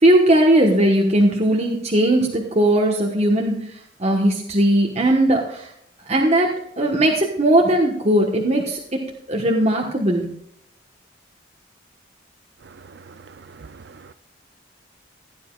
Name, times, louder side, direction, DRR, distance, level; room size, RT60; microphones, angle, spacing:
voice 1, 0.0-3.7 4.0-5.7 6.1-6.5 6.8-9.0 9.3-10.3, right 1 dB, 35° right, 1.2 m, -18 dB
voice 2, 12.8-14.1, right 4 dB, 55° right, 0.4 m, -44 dB
16.0 x 10.0 x 2.4 m
head